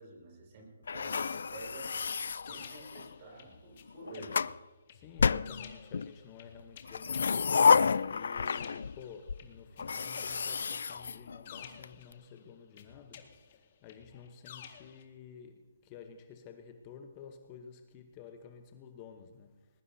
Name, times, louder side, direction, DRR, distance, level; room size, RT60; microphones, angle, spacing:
voice 1, 0.0-1.9 2.5-4.5, right 2 dB, 35° right, 5.5 m, -49 dB
sound 1, 0.9-3.2 3.9-4.6 5.2-6.1 6.8-9.0 9.3-9.4 9.8-11.9, left 5 dB, 70° left, 0.4 m, -30 dB
sound 2, 1.9-3.8 4.1-9.8 10.1-12.4 12.8-15.0, left 8 dB, 40° left, 1.7 m, -52 dB
voice 2, 4.9-19.7, left 7 dB, 25° left, 1.0 m, -51 dB
21.0 x 19.0 x 2.8 m
hypercardioid pair, 160°, 0 cm